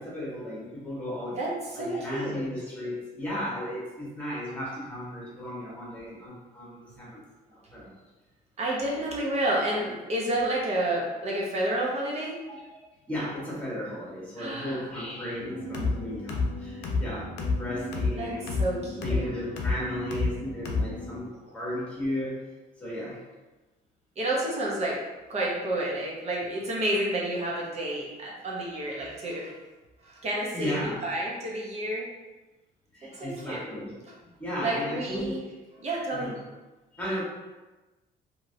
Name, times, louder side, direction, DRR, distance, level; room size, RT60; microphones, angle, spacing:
voice 1, 0.0-1.4 1.7-7.2 7.5-7.9 12.7-12.8 13.1-18.5 18.8-22.4 22.8-23.2 30.5-31.1 32.9-33.9 34.2-35.3 36.1-36.4 36.9-37.2, left 1 dB, 10° left, -7 dB, 1.5 m, -35 dB
voice 2, 1.8-2.5 8.6-12.4 14.4-14.8 18.2-18.3 18.6-19.4 24.2-25.0 25.3-29.5 30.0-30.7 31.0-32.1 33.0-33.6 34.6-35.4 35.8-36.3, right 1 dB, 40° right, -3 dB, 0.9 m, -30 dB
sound 1, 15.4-21.2, left 3 dB, 85° left, 0.6 m, -30 dB
2.9 x 2.7 x 2.7 m, 1.1 s
cardioid pair, 110°, 17 cm